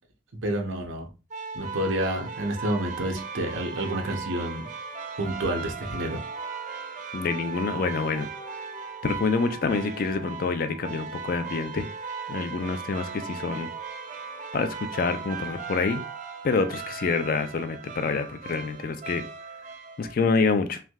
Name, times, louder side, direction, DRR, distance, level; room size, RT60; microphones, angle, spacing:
voice 1, 0.4-1.1 1.5-4.7 5.2-6.2, right 1 dB, 90° right, 2 dB, 0.7 m, -29 dB
sound 1, 1.3-20.2, right 5 dB, 40° right, 0.3 m, -37 dB
voice 2, 7.1-8.3 9.0-11.9 12.3-13.7 14.5-16.0 16.4-19.2 20.0-20.8, left 4 dB, 45° left, 9 dB, 0.3 m, -27 dB
3.2 x 2.6 x 2.3 m, 0.32 s
head